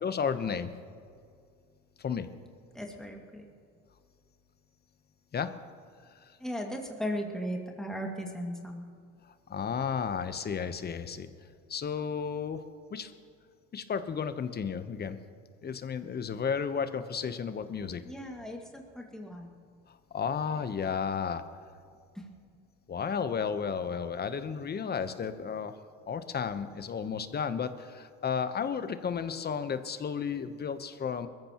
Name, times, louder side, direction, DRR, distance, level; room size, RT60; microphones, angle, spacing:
voice 1, 0.0-0.7 2.0-2.3 5.3-5.5 6.3-6.4 9.5-11.3 11.7-12.6 12.9-13.1 13.7-15.2 15.6-18.0 19.9-21.4 22.9-25.8 26.1-31.3, left 6 dB, 35° left, 11 dB, 1.0 m, -33 dB
voice 2, 2.7-3.5 6.4-8.8 18.0-19.5 22.1-22.3, equal, ahead, 0 dB, 2.1 m, -37 dB
21.5 x 14.5 x 3.0 m, 2.2 s
supercardioid pair, 85°, 30 cm